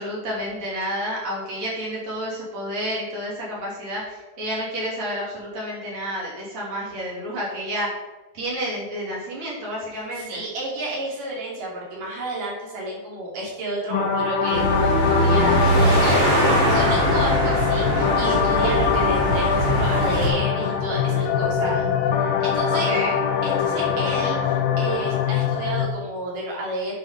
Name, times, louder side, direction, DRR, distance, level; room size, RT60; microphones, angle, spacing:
voice 1, 0.0-7.9 8.3-10.4 22.7-23.1, equal, 50° right, -5 dB, 4.1 m, -30 dB
voice 2, 9.9-16.4 16.7-21.9 22.4-22.9 23.4-27.0, right 2 dB, 65° right, -4 dB, 4.4 m, -30 dB
sound 1, 13.9-25.9, left 7 dB, 85° left, 2.6 m, -23 dB
sound 2, 14.5-20.3, right 1 dB, 35° right, 3.9 m, -21 dB
10.0 x 5.7 x 5.2 m, 1.1 s
omnidirectional pair, 4.1 m